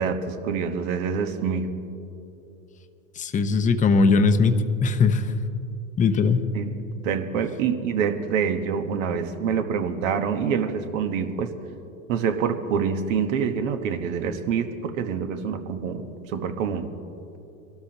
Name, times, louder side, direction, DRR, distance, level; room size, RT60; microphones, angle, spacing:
voice 1, 0.0-1.7 6.5-6.8 7.0-11.5 12.1-16.9, right 6 dB, 70° right, 7 dB, 1.4 m, -26 dB
voice 2, 3.2-5.3 6.0-6.5, left 4 dB, 20° left, 8 dB, 0.8 m, -20 dB
24.5 x 13.0 x 3.0 m, 2.8 s
hypercardioid pair, 105°, 41 cm